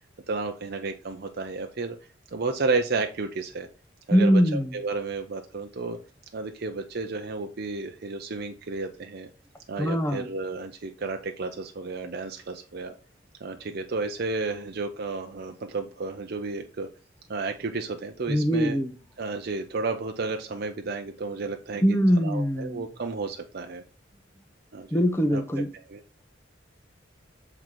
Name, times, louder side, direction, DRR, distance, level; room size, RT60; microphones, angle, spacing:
voice 1, 0.3-2.0 2.3-3.7 4.1-6.0 6.3-9.3 9.7-12.9 13.4-16.9 17.3-18.8 19.2-23.8 24.7-24.9 25.3-25.4 25.7-26.0, right 3 dB, 55° right, 0.6 m, -32 dB
voice 2, 4.1-4.7 9.8-10.3 18.3-18.9 21.8-22.9 24.9-25.7, equal, 15° left, 0.7 m, -22 dB
7.9 x 3.9 x 4.4 m
head